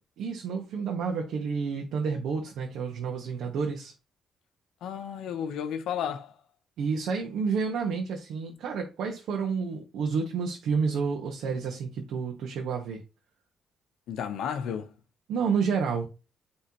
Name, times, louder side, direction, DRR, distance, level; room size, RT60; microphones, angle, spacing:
voice 1, 0.2-3.9 6.8-13.0 15.3-16.1, right 5 dB, 80° right, 1.3 m, -30 dB
voice 2, 4.8-6.3 14.1-14.9, left 8 dB, 80° left, 0.8 m, -32 dB
9.7 x 3.5 x 2.9 m
cardioid pair, 90°, 0 cm